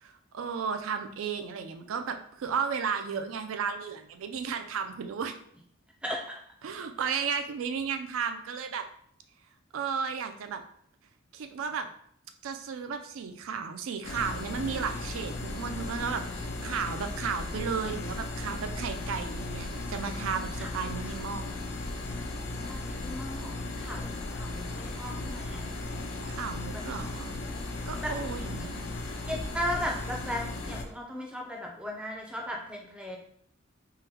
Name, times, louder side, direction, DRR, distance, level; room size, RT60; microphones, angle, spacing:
voice 1, 0.0-5.4 6.6-8.9 9.7-10.6 11.3-11.9 12.4-21.5 26.3-27.3 27.9-28.8, right 6 dB, 75° right, 7 dB, 0.4 m, -34 dB
voice 2, 6.0-6.3 20.6-20.7 22.7-23.5 23.8-25.7 26.7-26.8 28.0-28.5 29.3-33.2, equal, 5° right, 0 dB, 0.4 m, -36 dB
sound 1, 14.0-30.8, left 2 dB, 65° left, 0.4 m, -36 dB
3.7 x 2.1 x 2.8 m, 0.65 s
head